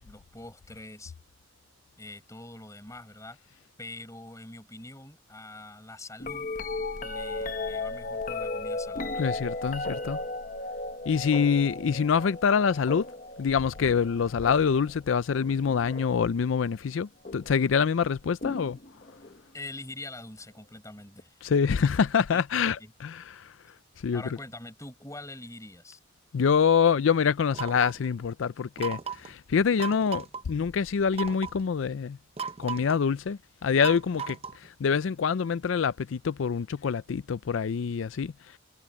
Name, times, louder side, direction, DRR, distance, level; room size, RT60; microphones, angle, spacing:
voice 1, 0.0-1.1 2.0-3.4 3.8-6.5 7.0-9.3 19.5-21.4 21.8-21.9 22.8-22.9 24.1-26.0, left 2 dB, 15° left, 5.3 m, -44 dB
sound 1, 6.2-16.3 17.2-17.7 18.4-19.4 21.2-21.3, left 2 dB, 40° left, 1.3 m, -36 dB
voice 2, 9.2-10.2 11.1-13.0 13.4-18.8 21.4-23.5 24.0-24.2 26.3-32.2 32.6-34.4 34.8-38.3, left 6 dB, 80° left, 0.4 m, -25 dB
sound 2, 27.5-28.1 28.8-29.3 29.8-30.4 31.1-31.6 32.4-33.0 33.8-34.7, right 6 dB, 30° right, 0.6 m, -36 dB
head